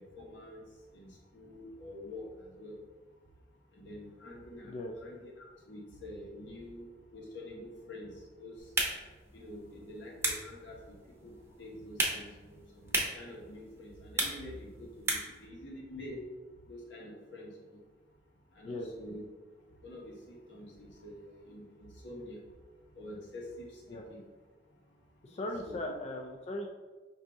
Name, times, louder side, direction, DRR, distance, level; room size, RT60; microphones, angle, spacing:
voice 1, 0.2-0.6 0.9-2.3 2.5-2.8 3.8-4.7 5.0-6.9 7.1-8.1 8.4-8.8 9.3-10.9 11.2-11.3 11.6-16.2 16.7-17.8 18.6-19.2 19.8-22.4 23.0-24.2 25.4-25.9, left 1 dB, 80° left, -3 dB, 1.1 m, -47 dB
sound 1, 8.6-15.5, right 2 dB, 15° right, 0.7 m, -37 dB
voice 2, 25.2-26.7, left 1 dB, 35° left, 1 dB, 0.3 m, -38 dB
5.0 x 2.7 x 3.5 m, 1.3 s
head